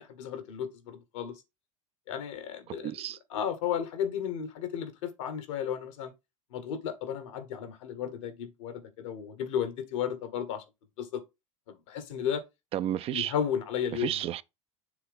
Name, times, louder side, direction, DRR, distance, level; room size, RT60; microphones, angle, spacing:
voice 1, 0.0-1.3 2.1-6.1 6.5-10.6 11.0-11.2 11.7-12.4 13.1-14.3, left 8 dB, 70° left, 1.6 m, -34 dB
voice 2, 2.7-3.2 12.7-13.3 14.0-14.4, right 12 dB, 35° right, 0.4 m, -32 dB
7.0 x 3.3 x 5.3 m
hypercardioid pair, 90°, 17 cm